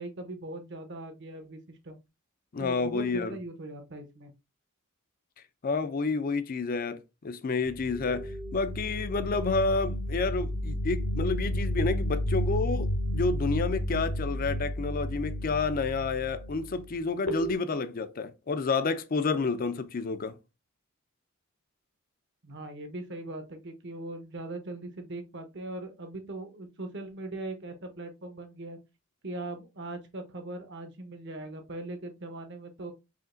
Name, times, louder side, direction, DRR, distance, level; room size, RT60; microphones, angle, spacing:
voice 1, 0.0-1.6 1.8-2.0 2.6-4.3 22.4-28.8 29.2-32.9, right 2 dB, 55° right, 0.9 m, -40 dB
voice 2, 2.5-3.4 5.6-20.4, left 4 dB, 40° left, 0.4 m, -30 dB
sound 1, 7.6-16.9 17.3-17.5, equal, 60° left, 0.8 m, -32 dB
5.0 x 2.8 x 2.6 m
head